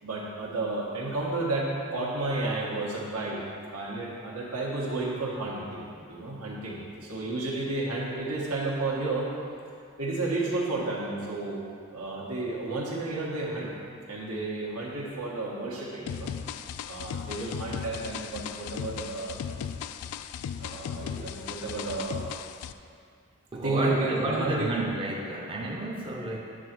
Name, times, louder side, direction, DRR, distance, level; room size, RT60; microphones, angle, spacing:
voice 1, 0.0-3.4 3.7-9.3 10.0-11.6 11.9-13.7 14.1-16.3 16.9-19.4 20.6-22.2 23.6-24.8, right 2 dB, 85° right, -4 dB, 1.6 m, -32 dB
sound 1, 16.1-22.7, left 8 dB, 85° left, 0.3 m, -37 dB
voice 2, 23.5-26.4, right 1 dB, 25° right, -1 dB, 0.6 m, -31 dB
8.8 x 3.9 x 6.0 m, 2.3 s
head